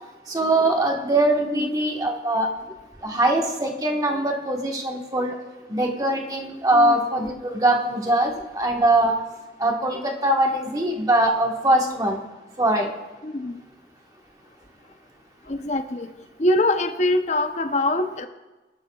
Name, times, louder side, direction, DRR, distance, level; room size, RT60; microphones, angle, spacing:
voice 1, 0.3-2.5 3.0-5.3 5.7-9.2 9.6-12.2 12.6-12.9, right 1 dB, 20° right, 1 dB, 1.3 m, -22 dB
voice 2, 13.2-13.6 15.5-16.1 16.4-18.3, left 1 dB, 40° left, 8 dB, 0.7 m, -23 dB
19.5 x 11.5 x 2.3 m, 1.2 s
head